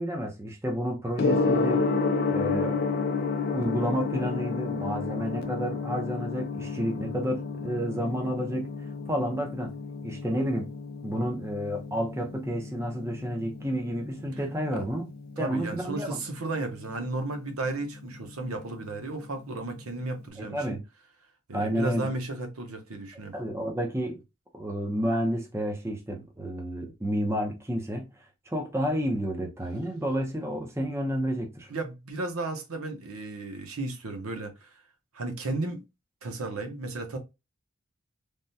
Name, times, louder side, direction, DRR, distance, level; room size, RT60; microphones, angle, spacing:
voice 1, 0.0-1.9 2.3-2.9 3.5-8.7 9.1-9.7 10.0-10.7 11.0-15.1 15.4-16.2 20.4-20.8 21.5-22.1 23.3-24.2 24.5-28.1 28.5-31.7, equal, 15° right, 0.6 m, -30 dB
Gong, 1.2-20.2, left 4 dB, 45° left, 0.4 m, -32 dB
voice 2, 15.4-20.8 21.5-23.3 31.7-34.8 35.1-35.8 36.2-37.2, right 2 dB, 90° right, 0.8 m, -34 dB
3.4 x 2.1 x 2.6 m
head